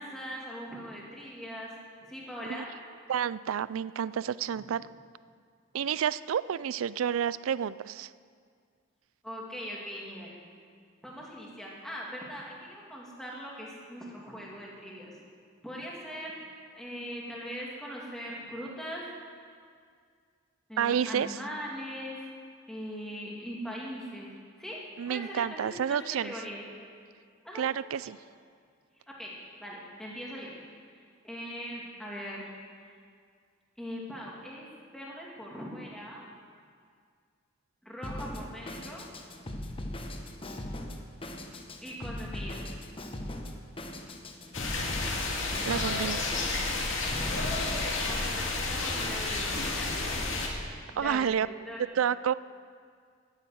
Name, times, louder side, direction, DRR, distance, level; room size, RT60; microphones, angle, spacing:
voice 1, 0.0-1.7 2.1-2.7 4.5-4.7 9.2-10.4 11.0-15.1 15.6-16.4 16.7-19.0 20.7-22.3 22.7-24.3 24.6-24.8 25.1-26.6 27.4-27.6 29.1-29.3 29.6-30.5 31.2-32.5 33.8-34.7 34.9-36.2 37.8-39.1 41.8-42.6 47.2-50.7 50.9-51.3 51.7-52.0, equal, 5° left, -4 dB, 2.5 m, -41 dB
voice 2, 3.1-4.9 5.7-8.1 20.8-21.4 25.0-26.3 27.5-28.2 45.7-46.2 51.0-51.5 52.0-52.3, right 8 dB, 85° right, 18 dB, 0.4 m, -29 dB
Drum kit, 38.0-48.2, left 1 dB, 25° left, 1.0 m, -40 dB
sound 1, 44.5-50.5, left 3 dB, 70° left, 2.1 m, -31 dB
12.0 x 10.5 x 7.8 m, 2.1 s
head